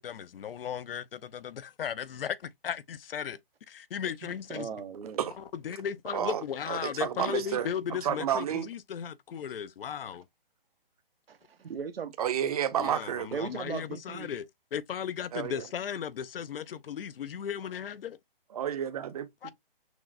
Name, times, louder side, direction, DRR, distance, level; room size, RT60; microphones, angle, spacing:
voice 1, 0.0-3.4 3.7-4.7 5.4-10.3 12.8-18.2 19.4-19.5, left 8 dB, 70° left, 0.5 m, -36 dB
voice 2, 4.5-5.2 11.3-12.1 13.3-14.3, right 6 dB, 90° right, 0.7 m, -37 dB
voice 3, 6.1-7.7 8.0-8.7 12.2-13.3 15.3-15.7 18.5-19.5, right 9 dB, 40° right, 0.5 m, -31 dB
6.1 x 2.1 x 2.4 m
hypercardioid pair, 155°, 29 cm